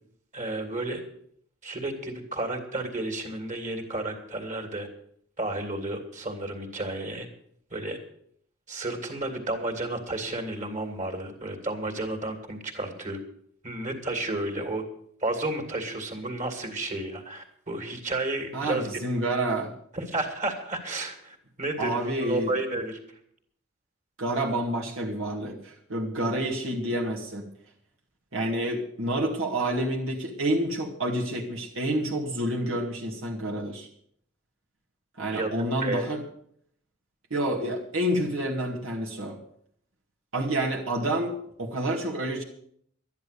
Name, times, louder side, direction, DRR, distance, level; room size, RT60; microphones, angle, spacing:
voice 1, 0.3-1.0 1.6-4.9 5.4-7.3 7.7-8.0 8.7-13.2 13.6-14.8 15.2-19.0 19.9-23.0 35.3-35.5 35.8-36.1, right 2 dB, 40° right, 4 dB, 2.6 m, -32 dB
voice 2, 18.5-19.7 21.8-22.5 24.2-27.5 28.3-33.9 35.2-36.2 37.3-39.4 40.3-42.4, right 1 dB, 80° right, -2 dB, 2.0 m, -28 dB
12.0 x 10.5 x 6.8 m, 0.67 s
head